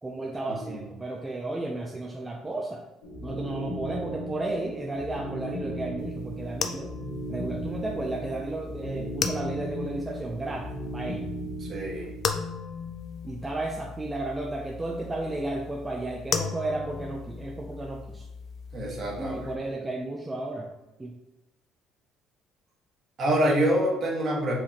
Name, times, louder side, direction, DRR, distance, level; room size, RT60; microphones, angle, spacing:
voice 1, 0.0-2.8 3.2-6.9 7.3-11.3 13.2-18.3 19.2-20.7 21.0-21.1, right 2 dB, 15° right, 0 dB, 0.5 m, -33 dB
sound 1, 3.0-12.3, right 1 dB, 90° left, 1.2 m, -36 dB
sound 2, 6.0-19.5, left 6 dB, 50° left, 0.4 m, -37 dB
voice 2, 11.6-12.1 18.7-19.5 23.2-24.5, right 1 dB, 45° right, -2 dB, 1.4 m, -26 dB
4.7 x 3.4 x 2.9 m, 0.95 s
cardioid pair, 110°, 0 cm